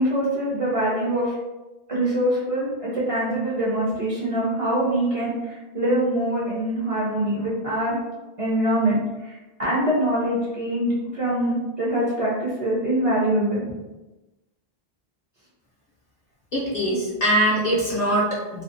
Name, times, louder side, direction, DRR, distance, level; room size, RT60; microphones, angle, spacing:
voice 1, 0.0-1.4 1.9-8.0 8.4-13.6, right 1 dB, 40° right, -7 dB, 0.6 m, -24 dB
voice 2, 16.5-18.6, right 1 dB, 50° left, -6 dB, 0.6 m, -22 dB
2.6 x 2.0 x 2.5 m, 1.1 s
omnidirectional pair, 1.0 m